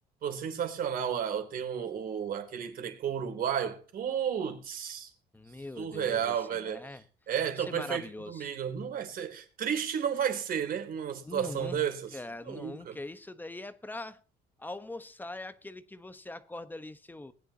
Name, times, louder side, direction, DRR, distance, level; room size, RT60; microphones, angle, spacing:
voice 1, 0.2-5.1 5.8-6.9 7.3-12.2 12.5-13.0, right 8 dB, 60° right, 3.3 m, -32 dB
voice 2, 5.3-7.0 7.6-8.4 11.2-11.8 12.1-14.2 14.6-17.3, left 2 dB, 10° left, 1.1 m, -42 dB
20.0 x 10.0 x 2.9 m
cardioid pair, 110°, 17 cm